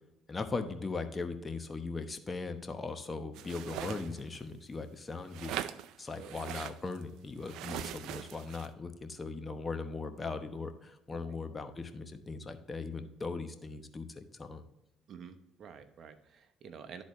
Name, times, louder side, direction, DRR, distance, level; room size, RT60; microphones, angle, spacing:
voice 1, 0.3-5.5 6.0-14.6, left 3 dB, 30° left, 8 dB, 0.9 m, -39 dB
sound 1, 3.4-4.4 5.3-7.0 7.4-8.7, right 12 dB, 75° right, 0.4 m, -41 dB
voice 2, 15.1-17.0, right 6 dB, 55° right, 9 dB, 0.8 m, -49 dB
12.0 x 4.1 x 3.1 m, 0.91 s
supercardioid pair, 70°, 0 cm